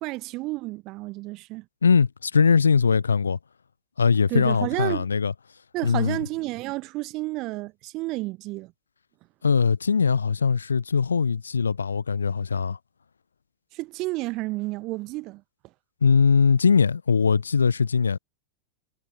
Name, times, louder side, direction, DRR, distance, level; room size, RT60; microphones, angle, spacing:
voice 1, 0.0-1.6 4.3-5.1 5.7-8.7 13.7-15.4, right 21 dB, 40° right, 1.1 m, -31 dB
voice 2, 1.8-3.4 4.0-5.3 5.8-6.2 9.4-12.8 16.0-18.2, left 5 dB, 75° left, 0.5 m, -21 dB
figure-of-eight pair, 90°, 0 cm